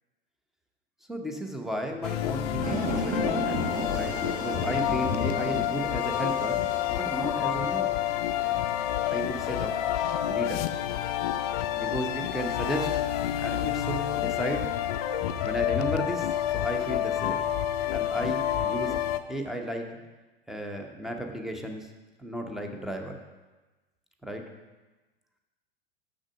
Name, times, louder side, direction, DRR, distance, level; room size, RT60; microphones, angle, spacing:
voice 1, 1.1-3.6 3.9-7.9 9.1-9.8 10.3-10.7 11.8-12.9 13.4-14.7 15.4-17.4 17.9-19.0 19.3-19.9 20.5-21.9 22.2-23.2 24.2-24.4, right 1 dB, ahead, 3 dB, 0.8 m, -34 dB
sound 1, 2.0-19.2, left 11 dB, 40° left, 0.5 m, -29 dB
sound 2, 2.6-9.6, right 1 dB, 25° right, 1.5 m, -35 dB
6.3 x 6.3 x 6.0 m, 1.2 s
figure-of-eight pair, 90°, 30 cm